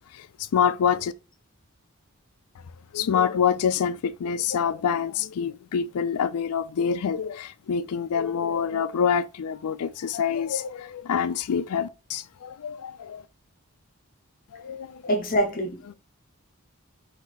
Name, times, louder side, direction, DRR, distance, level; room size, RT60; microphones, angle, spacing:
voice 1, 0.2-1.1 2.9-13.2 14.5-15.0, left 7 dB, 85° left, 0.4 m, -26 dB
voice 2, 15.1-15.9, equal, 40° left, 0.7 m, -25 dB
3.9 x 2.8 x 3.9 m
head